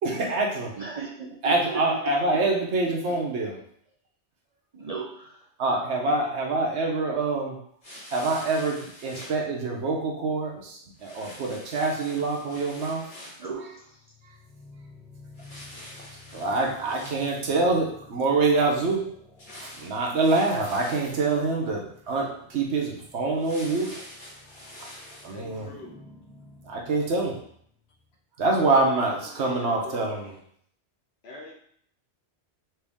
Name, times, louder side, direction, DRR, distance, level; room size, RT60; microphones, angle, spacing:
voice 1, 0.0-0.8 1.4-3.6 5.6-7.6 8.1-13.1 16.3-19.0 19.6-24.0 24.8-24.9 25.2-25.7 26.6-27.4 28.4-30.3, right 3 dB, 80° right, 0 dB, 1.2 m, -25 dB
voice 2, 0.8-2.4 2.8-2.9 4.7-5.5 13.4-14.0, right 5 dB, 50° right, -1 dB, 0.5 m, -36 dB
sound 1, 7.8-9.4 11.0-13.5 15.3-17.7 19.4-21.4 23.3-25.4, left 1 dB, 35° left, 1.1 m, -45 dB
sound 2, 13.6-28.2, left 2 dB, 5° left, 0.5 m, -52 dB
voice 3, 25.3-26.0 28.6-30.2 31.2-31.5, left 2 dB, 70° left, 0 dB, 1.1 m, -43 dB
4.4 x 3.0 x 3.5 m, 0.65 s
omnidirectional pair, 1.1 m